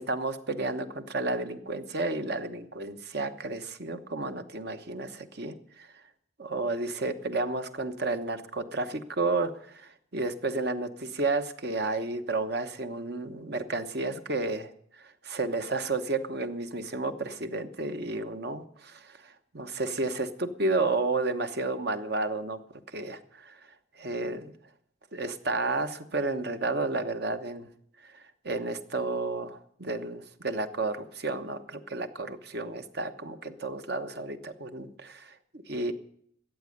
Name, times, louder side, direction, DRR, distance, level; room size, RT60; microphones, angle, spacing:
voice 1, 0.0-5.9 6.4-22.6 22.9-23.6 24.0-24.5 25.1-27.7 28.0-35.9, right 3 dB, 50° right, 8 dB, 1.0 m, -32 dB
13.5 x 8.5 x 9.4 m, 0.67 s
head